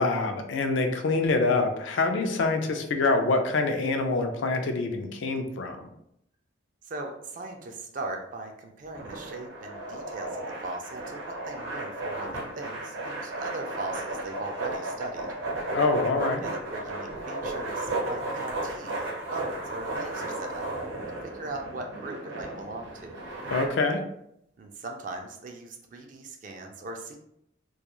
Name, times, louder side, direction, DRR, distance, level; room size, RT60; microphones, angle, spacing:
voice 1, 0.0-5.9 15.7-16.4 23.5-24.0, left 3 dB, 65° left, 5 dB, 0.4 m, -25 dB
voice 2, 6.8-15.3 16.4-19.0 19.3-20.7 21.2-23.2 24.6-27.2, right 2 dB, 40° right, 3 dB, 0.3 m, -39 dB
sound 1, 8.9-23.6, right 2 dB, 65° right, 0.7 m, -34 dB
2.3 x 2.2 x 2.9 m, 0.75 s
head